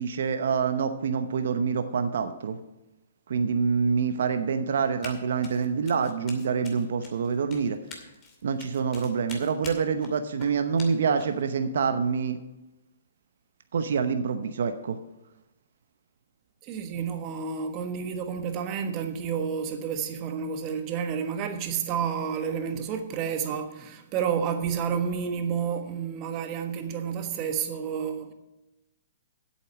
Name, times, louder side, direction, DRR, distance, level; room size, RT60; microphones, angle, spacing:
voice 1, 0.0-2.6 3.3-7.8 8.4-12.4 13.7-15.0, right 6 dB, 65° right, 0.8 m, -26 dB
Run, 5.0-5.2 5.4-11.4, left 4 dB, 25° left, 2.4 m, -45 dB
voice 2, 16.6-28.3, right 7 dB, 30° right, 1.4 m, -30 dB
8.3 x 8.1 x 7.1 m
hypercardioid pair, 135°, 0 cm